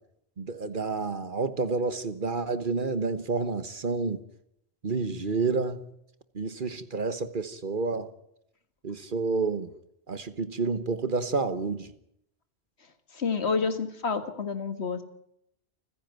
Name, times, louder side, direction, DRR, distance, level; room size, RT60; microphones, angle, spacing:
voice 1, 0.4-4.2 4.8-5.9 6.3-8.1 8.8-9.7 10.1-11.9, right 4 dB, 50° right, 1.4 m, -29 dB
voice 2, 13.1-15.0, left 5 dB, 75° left, 2.1 m, -29 dB
29.0 x 10.5 x 9.5 m
omnidirectional pair, 1.1 m